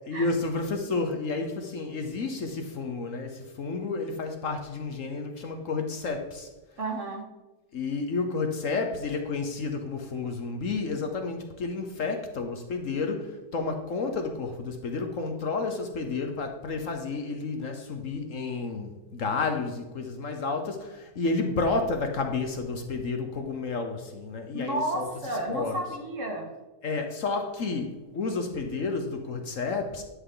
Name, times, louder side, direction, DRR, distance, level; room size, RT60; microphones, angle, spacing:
voice 1, 0.1-6.5 7.7-25.1 25.5-25.8 26.8-30.0, left 3 dB, 55° left, 1.2 m, -31 dB
voice 2, 6.8-7.2 24.5-26.5, right 1 dB, 50° right, 2.1 m, -32 dB
11.5 x 7.9 x 3.9 m
omnidirectional pair, 1.7 m